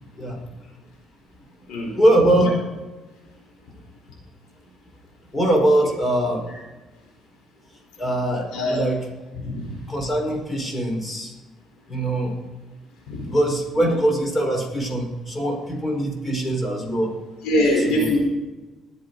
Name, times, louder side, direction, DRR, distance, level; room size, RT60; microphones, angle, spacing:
voice 1, 1.9-2.6 5.3-6.4 8.0-9.0 9.9-11.3 11.9-12.3 13.2-17.1 17.9-18.1, right 1 dB, 25° left, 1 dB, 4.9 m, -22 dB
voice 2, 9.4-9.8 13.1-13.3 17.4-18.2, left 1 dB, 80° left, -1 dB, 4.4 m, -22 dB
21.0 x 7.9 x 4.0 m, 1.2 s
cardioid pair, 85°, 0 cm